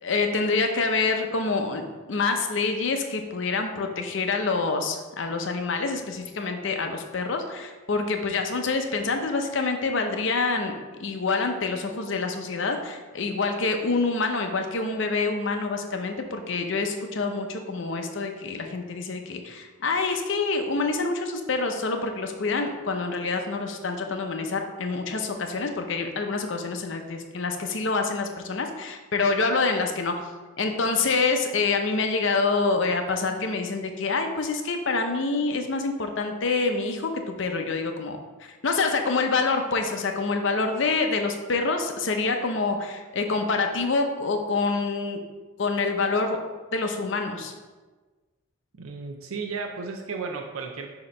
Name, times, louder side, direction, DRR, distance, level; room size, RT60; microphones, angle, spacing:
voice 1, 0.0-10.7 11.0-30.2 30.6-38.2 38.6-45.2 45.6-46.4 46.7-47.5, left 4 dB, 60° left, 5 dB, 0.6 m, -26 dB
voice 2, 48.8-50.9, right 4 dB, 80° right, 3 dB, 0.5 m, -34 dB
6.3 x 2.9 x 5.2 m, 1.3 s
head